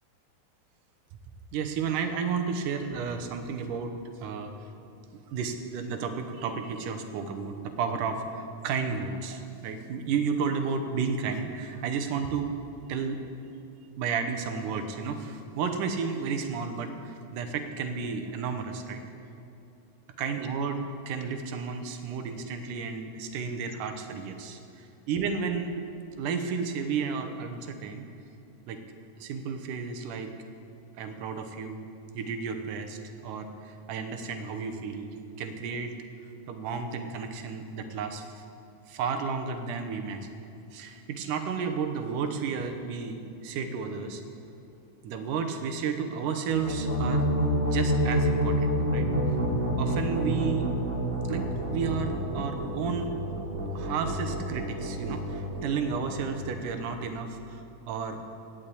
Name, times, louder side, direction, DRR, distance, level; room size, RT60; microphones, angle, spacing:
voice 1, 1.5-3.9 4.2-4.5 5.3-12.5 12.9-13.2 14.0-19.0 20.2-24.6 25.1-25.7 26.2-28.1 28.7-28.8 29.2-30.3 31.0-31.9 32.1-35.9 36.5-38.4 38.9-40.3 40.7-44.2 45.0-47.3 47.6-49.4 49.8-50.7 51.3-53.1 53.7-58.2, right 5 dB, 85° right, 6 dB, 2.5 m, -32 dB
sound 1, 46.4-57.1, equal, 25° right, 1.3 m, -29 dB
18.0 x 6.4 x 8.5 m, 2.7 s
omnidirectional pair, 3.6 m